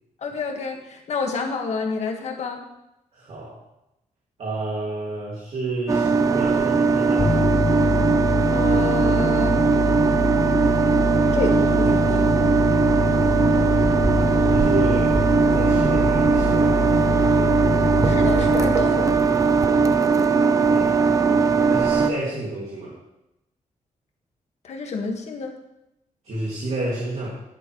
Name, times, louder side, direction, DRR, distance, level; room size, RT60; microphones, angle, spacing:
voice 1, 0.2-2.6 8.5-9.6 11.3-12.3 18.0-19.1 24.6-25.5, left 4 dB, 60° left, 2 dB, 1.8 m, -29 dB
voice 2, 3.1-3.6 4.4-7.5 13.4-13.8 14.5-15.2 15.5-17.0 20.7-21.0 21.7-22.9 26.2-27.3, right 2 dB, 55° right, -4 dB, 2.5 m, -30 dB
sound 1, 5.9-22.1, right 5 dB, 25° right, 0.6 m, -19 dB
sound 2, 7.2-20.4, left 3 dB, 30° left, 0.9 m, -25 dB
13.0 x 10.5 x 3.2 m, 0.90 s
wide cardioid pair, 165°, 13 cm